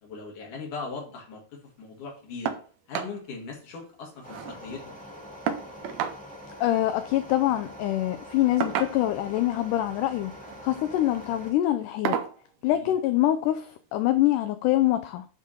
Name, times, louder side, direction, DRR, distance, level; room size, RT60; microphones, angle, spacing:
voice 1, 0.0-2.5 2.9-4.8 12.6-12.9, left 4 dB, 60° left, 3.6 m, -39 dB
sound 1, 2.4-2.7 2.9-3.2 3.5-3.6 3.9-4.6 5.5-6.2 7.4-7.6 8.6-9.3 10.3-10.6 11.1-11.3 12.0-12.4 13.6-13.7 14.2-14.3, right 8 dB, 85° right, 1.6 m, -31 dB
sound 2, 4.2-11.5, equal, 5° left, 1.0 m, -44 dB
voice 2, 6.6-10.3 10.6-12.2 12.6-15.3, left 14 dB, 85° left, 1.8 m, -25 dB
10.5 x 3.8 x 4.2 m
omnidirectional pair, 4.2 m